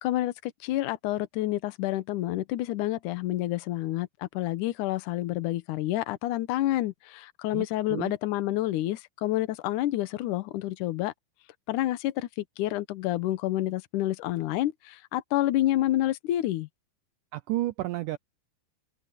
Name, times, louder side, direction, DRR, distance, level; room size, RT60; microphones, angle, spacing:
voice 1, 0.0-11.1 11.7-16.7, left 15 dB, 70° left, 2.1 m, -29 dB
voice 2, 7.5-8.1 17.3-18.2, right 16 dB, 80° right, 1.9 m, -31 dB
omnidirectional pair, 4.4 m